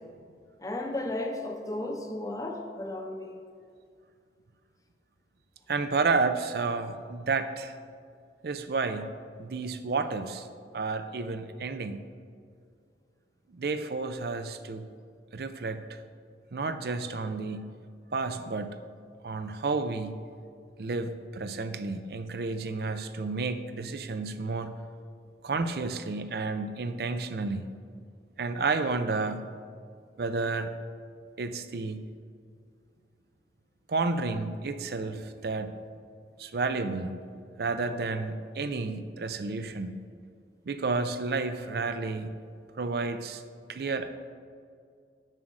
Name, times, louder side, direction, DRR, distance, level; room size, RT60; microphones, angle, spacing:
voice 1, 0.6-3.3, left 1 dB, 20° left, 3 dB, 0.7 m, -34 dB
voice 2, 5.7-7.8 8.4-9.1 9.4-10.5 10.7-12.0 13.5-14.8 15.3-16.0 16.5-17.7 18.1-18.8 19.2-20.2 20.8-24.7 25.4-27.6 28.4-29.5 30.2-30.7 31.4-32.0 33.9-35.7 36.4-37.1 37.6-39.9 40.7-42.3 42.7-43.4 43.7-44.1, right 3 dB, 60° right, 10 dB, 0.5 m, -31 dB
7.5 x 6.1 x 6.3 m, 2.2 s
head